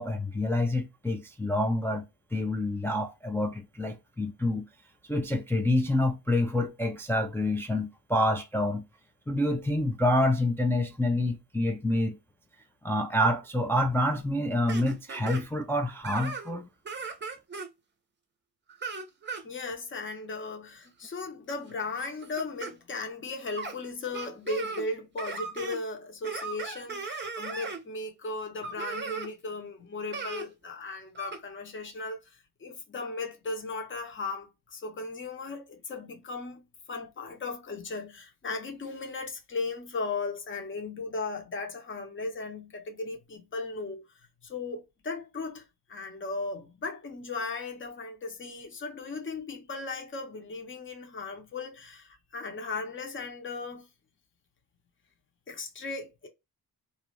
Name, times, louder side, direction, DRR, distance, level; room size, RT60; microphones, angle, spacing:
voice 1, 0.0-2.0 2.3-4.7 5.0-8.8 9.3-12.2 12.8-16.7, left 1 dB, 5° left, 0.3 m, -27 dB
sound 1, 14.7-15.4 16.0-16.5 16.8-17.7 18.7-19.4 20.9-21.1 21.5-22.7 23.6-23.7 24.1-24.9 25.2-25.8 26.2-27.8 28.6-29.3 30.1-30.4 31.1-31.4, right 4 dB, 25° right, 0.6 m, -37 dB
voice 2, 19.4-36.6 36.9-44.1 44.4-53.9 55.5-56.3, left 3 dB, 30° left, 0.8 m, -37 dB
2.6 x 2.4 x 3.1 m
cardioid pair, 95°, 40 cm